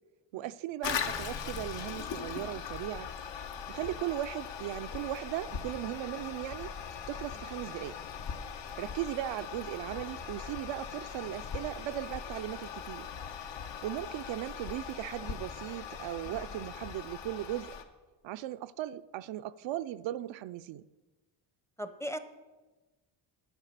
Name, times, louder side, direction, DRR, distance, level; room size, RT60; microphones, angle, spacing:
voice 1, 0.3-3.1 3.7-6.7 7.1-8.0 8.8-13.1 13.8-17.8 18.2-20.9, right 13 dB, 70° right, 0.5 m, -37 dB
Toilet flush, 0.8-17.8, left 7 dB, 70° left, 1.2 m, -40 dB
voice 2, 21.8-22.2, equal, 5° left, 0.6 m, -39 dB
9.1 x 8.9 x 6.6 m
cardioid pair, 105°, 46 cm